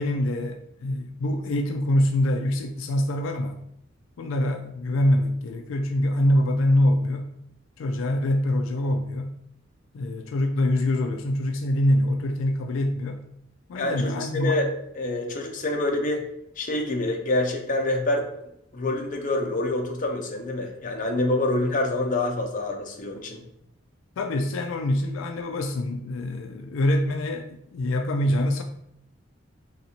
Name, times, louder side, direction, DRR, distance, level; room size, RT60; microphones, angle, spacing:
voice 1, 0.0-3.6 4.2-7.3 7.8-9.4 9.9-13.2 13.7-14.6 24.2-28.6, left 1 dB, 80° left, 5 dB, 0.3 m, -25 dB
voice 2, 13.8-14.7 14.9-16.3 16.6-18.3 18.7-23.4, left 2 dB, 40° left, 2 dB, 0.6 m, -26 dB
4.0 x 3.2 x 2.8 m, 0.77 s
head